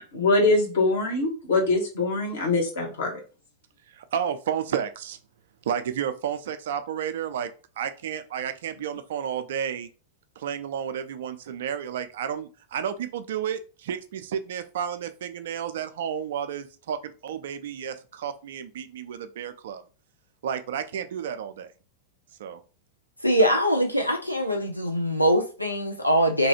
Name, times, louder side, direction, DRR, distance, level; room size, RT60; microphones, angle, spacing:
voice 1, 0.0-3.1, left 2 dB, 60° left, 1.1 m, -23 dB
voice 2, 3.9-5.2 5.7-7.5 7.8-9.9 10.4-19.8 20.4-21.7 22.4-22.6, right 8 dB, 60° right, 0.3 m, -31 dB
voice 3, 23.2-26.5, equal, 90° left, 0.4 m, -22 dB
2.8 x 2.3 x 2.8 m
figure-of-eight pair, 90°, 0 cm